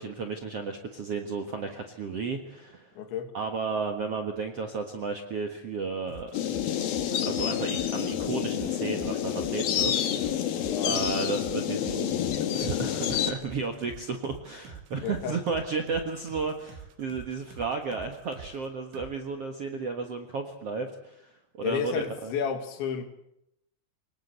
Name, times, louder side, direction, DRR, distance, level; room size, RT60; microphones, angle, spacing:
voice 1, 0.0-3.0 3.3-6.4 7.1-10.4 10.8-12.1 12.5-22.3, right 4 dB, 60° right, 4 dB, 1.6 m, -33 dB
voice 2, 3.0-3.3 10.6-11.0 15.0-15.4 21.6-23.0, left 7 dB, 85° left, 7 dB, 4.6 m, -31 dB
sound 1, 6.1-18.7 18.9-19.1, right 6 dB, 90° right, 4.3 m, -46 dB
sound 2, 6.3-13.3, left 10 dB, 65° left, 3.1 m, -28 dB
24.5 x 20.0 x 8.1 m, 0.78 s
omnidirectional pair, 5.1 m